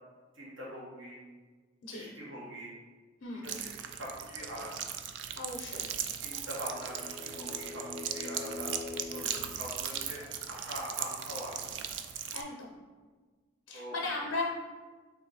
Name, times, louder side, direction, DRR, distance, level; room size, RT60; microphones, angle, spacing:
voice 1, 0.3-1.2 1.9-2.7 3.4-4.9 6.2-8.7 9.1-9.2 9.6-11.6 13.7-13.9, equal, 85° right, -6 dB, 1.4 m, -43 dB
voice 2, 1.8-2.1 3.2-3.6 5.4-6.0 9.2-9.5 12.3-12.7 13.7-14.4, left 3 dB, 75° left, -3 dB, 0.6 m, -37 dB
sound 1, 3.4-12.4, right 9 dB, 65° right, 0.3 m, -38 dB
sound 2, 6.4-10.3, left 3 dB, 30° left, 0.5 m, -44 dB
3.4 x 3.0 x 3.9 m, 1.4 s
head